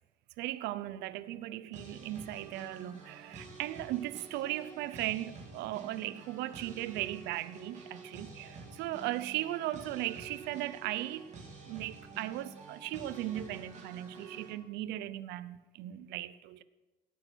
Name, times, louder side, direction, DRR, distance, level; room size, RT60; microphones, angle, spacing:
voice 1, 0.4-11.3 11.6-16.6, right 14 dB, 90° right, 0.7 m, -37 dB
sound 1, 1.7-14.5, right 4 dB, 45° right, 3.5 m, -49 dB
18.0 x 9.0 x 6.2 m
cardioid pair, 110°, 17 cm